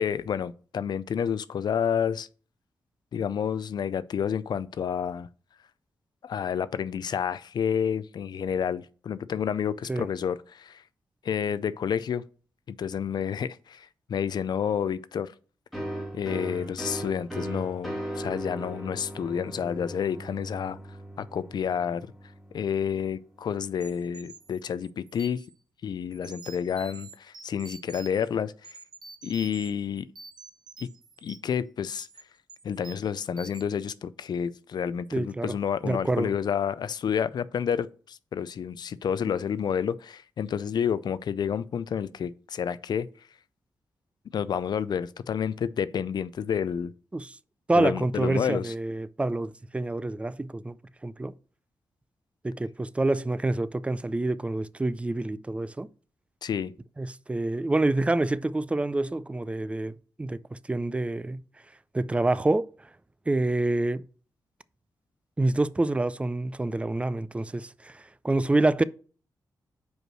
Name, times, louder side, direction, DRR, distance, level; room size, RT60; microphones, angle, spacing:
voice 1, 0.0-2.3 3.1-5.3 6.2-10.8 11.2-12.2 12.7-15.3 16.1-20.8 21.2-22.1 22.5-25.4 25.8-28.8 29.2-30.1 30.8-30.9 31.2-32.1 32.6-43.1 44.3-46.9 47.7-48.7 56.4-56.7, left 8 dB, 65° left, 0.4 m, -29 dB
sound 1, 15.7-23.2, right 1 dB, ahead, 1.7 m, -38 dB
sound 2, 23.8-25.5 26.1-28.3 28.6-29.7 30.0-31.5 31.9-32.2 32.5-33.1 33.4-33.6, right 4 dB, 65° right, 0.8 m, -48 dB
voice 2, 35.1-35.5 35.8-36.3 47.1-47.4 47.7-50.8 51.0-51.3 52.4-55.9 57.0-61.4 61.9-62.7 63.3-64.0 65.4-68.8, right 2 dB, 15° right, 0.4 m, -27 dB
5.2 x 4.6 x 6.1 m
cardioid pair, 70°, 8 cm